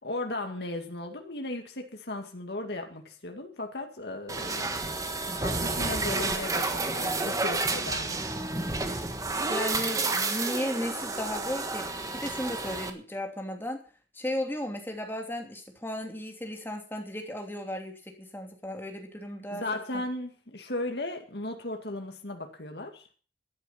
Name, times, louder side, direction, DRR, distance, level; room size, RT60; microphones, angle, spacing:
voice 1, 0.0-4.9 5.4-8.3 19.5-23.1, left 2 dB, 65° left, 2.2 m, -36 dB
sound 1, 4.3-12.9, right 3 dB, 20° right, 1.5 m, -30 dB
voice 2, 9.5-13.8 14.1-19.6 19.9-20.0, left 1 dB, 10° left, 3.0 m, -35 dB
13.0 x 11.0 x 5.9 m
head